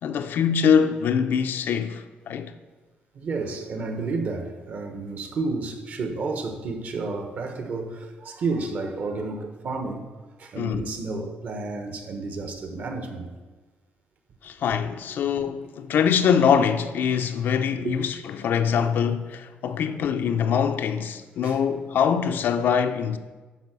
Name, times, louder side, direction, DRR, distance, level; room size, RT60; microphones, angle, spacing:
voice 1, 0.0-2.5 10.6-10.8 14.4-23.2, left 7 dB, 60° left, 0.6 m, -23 dB
voice 2, 3.1-10.1 10.4-13.3 17.8-18.0 18.7-18.9 19.9-20.0 21.4-21.6, right 3 dB, 50° right, 1.2 m, -31 dB
11.5 x 4.9 x 6.1 m
cardioid pair, 150°, 4 cm